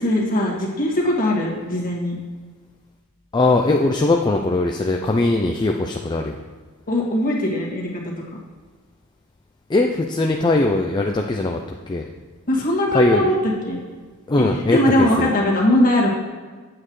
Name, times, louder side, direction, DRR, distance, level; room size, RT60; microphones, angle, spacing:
voice 1, 0.0-2.1 6.9-8.1 12.5-13.8 14.4-16.1, left 1 dB, 40° left, -3 dB, 1.8 m, -20 dB
voice 2, 3.3-6.4 9.7-11.6 11.9-12.1 12.9-13.3 14.3-15.3, left 2 dB, 20° left, 2 dB, 0.4 m, -20 dB
8.7 x 7.6 x 3.1 m, 1.4 s
head